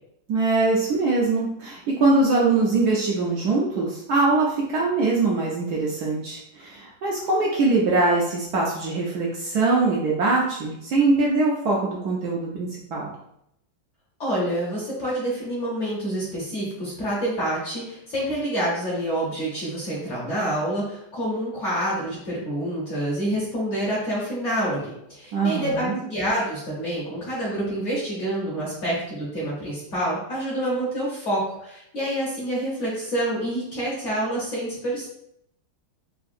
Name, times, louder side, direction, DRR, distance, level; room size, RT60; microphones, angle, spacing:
voice 1, 0.3-13.1 25.3-26.0, right 3 dB, 70° right, -3 dB, 0.9 m, -22 dB
voice 2, 14.2-35.1, right 1 dB, 50° left, -6 dB, 0.9 m, -27 dB
3.6 x 2.3 x 2.5 m, 0.77 s
omnidirectional pair, 2.0 m